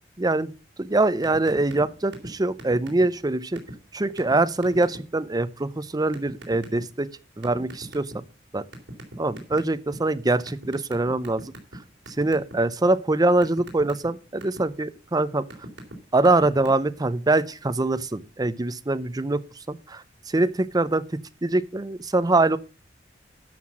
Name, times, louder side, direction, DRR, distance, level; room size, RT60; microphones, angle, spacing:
voice 1, 0.2-0.5 0.8-3.6 3.9-7.1 7.4-8.2 8.5-8.6 9.2-11.5 12.1-15.4 16.1-19.4 19.7-21.0 21.4-22.6, right 2 dB, 20° right, 0.6 m, -23 dB
sound 1, 1.2-1.8 2.1-2.3 2.6-3.2 3.6-3.7 4.2-4.3 4.6-5.0 6.1-6.8 7.4-8.3 8.7-10.0 10.5-11.8 12.1-12.5 12.9-14.6 15.2-15.9 16.2-16.7, right 1 dB, 75° right, 3.5 m, -40 dB
12.0 x 5.8 x 6.1 m
head